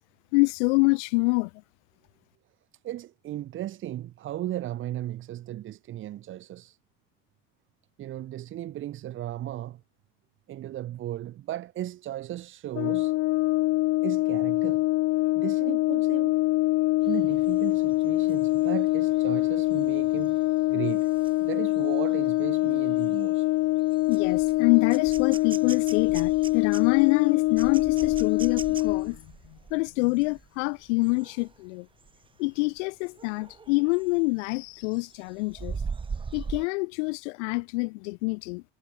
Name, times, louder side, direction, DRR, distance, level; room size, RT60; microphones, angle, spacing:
voice 1, 0.3-1.5 24.1-31.9 32.4-35.8 36.3-38.6, left 28 dB, 75° left, 1.2 m, -26 dB
voice 2, 2.8-6.8 8.0-9.8 10.5-13.1 14.0-14.8 15.4-16.4 17.0-20.4 20.7-21.1 21.4-23.5, right 13 dB, 35° right, 5.8 m, -36 dB
Brass instrument, 12.7-29.1, left 19 dB, 40° left, 1.5 m, -24 dB
sound 1, 17.0-31.6 32.0-32.3 32.6-34.3 34.7-36.7, right 5 dB, 15° right, 4.5 m, -42 dB
cardioid pair, 175°, 36 cm